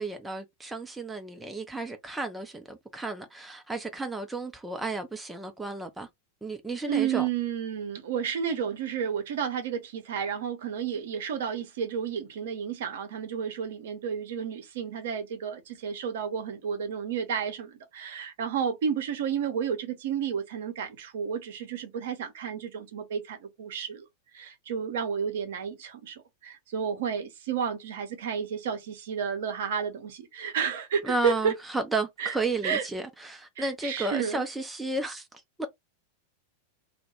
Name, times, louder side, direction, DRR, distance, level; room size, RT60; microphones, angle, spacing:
voice 1, 0.0-6.1 6.4-7.3 31.0-35.7, right 3 dB, 10° right, 0.4 m, -33 dB
voice 2, 6.9-24.1 24.3-31.6 32.2-32.4 32.6-32.9 33.6-34.4, right 7 dB, 55° right, 0.6 m, -31 dB
2.1 x 2.1 x 2.9 m
figure-of-eight pair, 90°, 0 cm